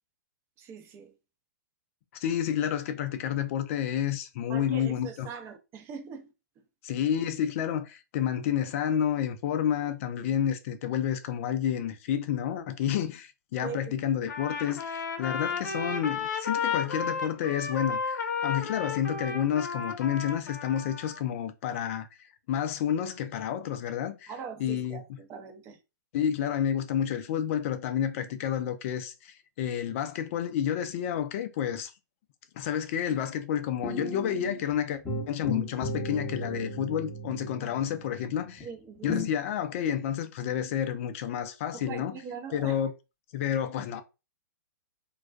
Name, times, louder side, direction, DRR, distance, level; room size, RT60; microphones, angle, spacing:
voice 1, 0.6-1.1 4.5-6.3 13.6-13.9 24.3-25.8 33.1-33.2 38.6-39.1 41.7-42.8, right 6 dB, 25° right, 0.6 m, -41 dB
voice 2, 2.2-5.3 6.8-22.1 22.5-24.3 24.6-25.0 26.1-31.9 32.6-35.0 35.3-38.7 39.0-42.2 42.5-42.9 43.3-44.0, left 9 dB, 45° left, 0.4 m, -30 dB
Trumpet, 14.3-21.2, left 5 dB, 70° left, 0.7 m, -33 dB
sound 1, 33.8-34.7 35.1-38.6 39.1-39.3, left 2 dB, 10° left, 0.8 m, -35 dB
2.3 x 2.2 x 2.4 m
hypercardioid pair, 130°, 10 cm